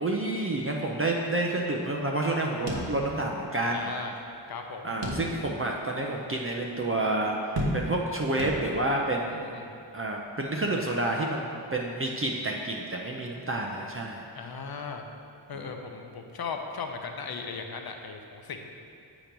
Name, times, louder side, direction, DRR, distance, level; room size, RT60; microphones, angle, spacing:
voice 1, 0.0-3.9 4.8-9.5 9.9-14.2, right 2 dB, 30° right, -1 dB, 0.5 m, -29 dB
sound 1, 2.7-3.5 3.8-3.9 5.0-5.7 6.2-6.3 7.6-8.1 8.4-9.0, equal, 70° right, 1.1 m, -32 dB
voice 2, 3.7-4.2 4.5-4.9 9.3-9.7 14.3-15.0 15.5-18.7, left 5 dB, 55° left, 4 dB, 0.6 m, -37 dB
8.4 x 3.0 x 5.2 m, 2.4 s
wide cardioid pair, 115°, 45 cm